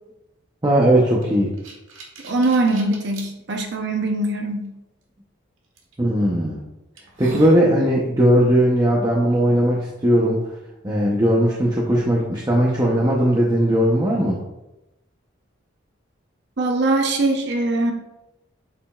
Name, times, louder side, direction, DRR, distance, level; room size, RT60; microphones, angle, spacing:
voice 1, 0.6-1.5 6.0-6.6 7.2-10.4 10.8-14.4, equal, 20° right, -3 dB, 0.8 m, -18 dB
sound 1, 1.2-3.3 3.9-4.0 5.8-6.0 6.5-6.6 7.0-7.6, right 1 dB, 85° right, 1.4 m, -37 dB
voice 2, 2.2-4.7 16.6-17.9, right 2 dB, 60° right, 3 dB, 0.8 m, -21 dB
8.4 x 5.1 x 2.4 m, 0.95 s
head